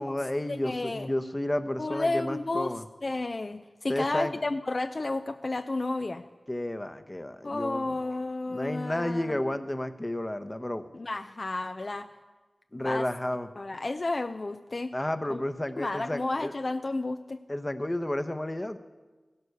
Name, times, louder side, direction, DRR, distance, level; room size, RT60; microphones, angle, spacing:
voice 1, 0.0-2.8 3.9-4.4 6.5-8.0 8.5-10.8 12.7-13.5 14.9-16.5 17.5-18.8, left 1 dB, 20° left, 10 dB, 0.8 m, -31 dB
voice 2, 0.6-1.1 1.8-2.7 3.0-6.2 7.4-9.3 10.9-12.1 12.7-13.0 13.6-14.9 15.3-15.4 15.8-17.4, left 2 dB, 50° left, 8 dB, 0.5 m, -32 dB
16.0 x 11.0 x 6.8 m, 1.2 s
wide cardioid pair, 75°, 0 cm